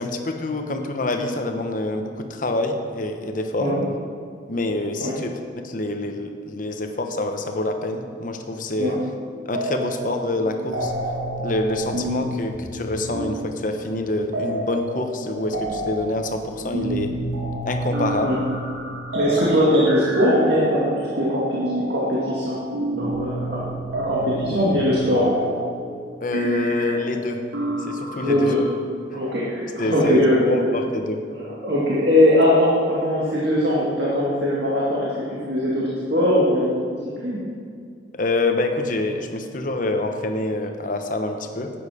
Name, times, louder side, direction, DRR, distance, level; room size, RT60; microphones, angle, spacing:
voice 1, 0.0-3.7 4.5-9.0 9.5-10.9 11.4-17.1 17.7-18.4 26.2-27.4 27.9-28.5 29.1-29.2 29.8-30.2 30.5-31.2 38.1-41.7, left 2 dB, 45° left, 5 dB, 0.9 m, -26 dB
sound 1, 9.5-10.2 10.4-28.7, right 1 dB, 85° right, 1.8 m, -29 dB
voice 2, 19.1-22.5 23.0-25.3 28.2-28.6 29.1-30.5 31.3-35.1 35.5-36.7 37.2-37.4, left 1 dB, 60° right, -6 dB, 2.1 m, -20 dB
12.0 x 8.9 x 5.0 m, 2.3 s
head